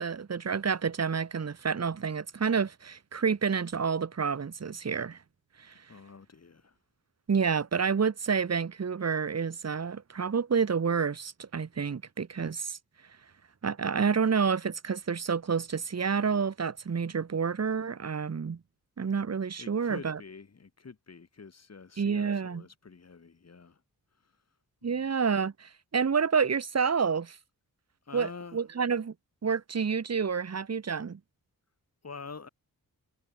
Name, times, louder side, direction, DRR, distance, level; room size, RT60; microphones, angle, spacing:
voice 1, 0.0-5.2 5.6-5.7 7.3-12.8 13.6-18.6 19.0-20.2 22.0-22.6 24.8-27.4 28.1-29.1 29.4-31.2, right 6 dB, 45° right, 1.6 m, -29 dB
voice 2, 5.9-6.8 19.6-23.8 24.2-24.3 24.8-25.1 28.1-28.6 32.0-32.5, left 5 dB, 45° left, 4.4 m, -47 dB
wide cardioid pair, 145°, 36 cm